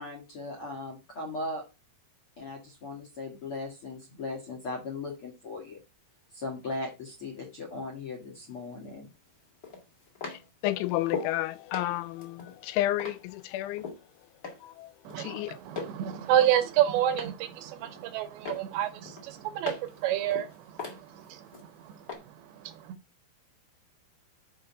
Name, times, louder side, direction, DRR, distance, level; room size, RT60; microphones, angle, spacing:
voice 1, 0.0-1.6 2.4-5.8 6.3-9.1, left 2 dB, 55° left, 1.6 m, -38 dB
sound 1, 8.6-8.7 9.6-11.4 11.7-14.0 14.4-14.8 15.1-16.0 16.3-17.4 17.8-18.2 18.5-20.0 20.3-21.7 22.1-22.2, left 4 dB, 30° left, 1.7 m, -39 dB
voice 2, 10.3-13.9 14.6-14.9 15.2-15.6, left 15 dB, 85° left, 3.0 m, -31 dB
voice 3, 15.0-23.0, right 11 dB, 75° right, 2.9 m, -30 dB
6.8 x 5.1 x 7.1 m
omnidirectional pair, 5.4 m